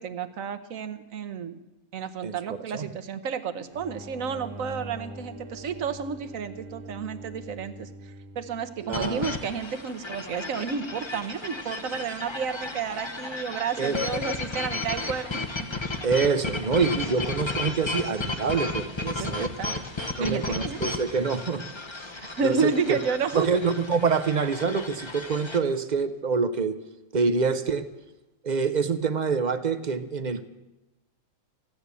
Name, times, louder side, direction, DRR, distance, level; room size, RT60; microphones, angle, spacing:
voice 1, 0.0-1.6 1.9-15.7 16.8-17.0 19.0-19.8 20.2-20.9 22.2-23.5, right 6 dB, 65° right, 11 dB, 1.3 m, -31 dB
sound 1, 3.7-9.1, right 1 dB, 85° right, 2.1 m, -43 dB
sound 2, 8.9-25.6, left 3 dB, 25° left, 0.8 m, -34 dB
voice 2, 8.9-9.3 13.8-14.0 16.0-19.5 20.2-21.6 21.9-22.0 22.4-23.0 23.4-26.8 27.1-27.9 28.4-30.5, right 5 dB, 45° right, 11 dB, 0.6 m, -26 dB
15.5 x 9.9 x 8.2 m, 1.0 s
omnidirectional pair, 1.5 m